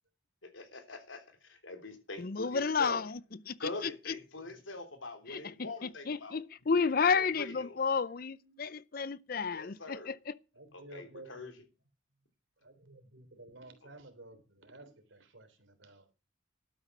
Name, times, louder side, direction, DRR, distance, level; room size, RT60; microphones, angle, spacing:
voice 1, 0.4-3.0 3.6-6.4 7.1-7.8 9.5-10.1 10.7-11.5, left 2 dB, 80° left, 3.3 m, -44 dB
voice 2, 2.2-3.1 3.5-3.6 5.3-10.2, left 5 dB, 50° left, 0.6 m, -31 dB
voice 3, 4.1-4.8 8.4-8.6 10.5-11.6 12.6-16.1, right 2 dB, 80° right, 3.4 m, -54 dB
12.5 x 9.4 x 6.1 m
head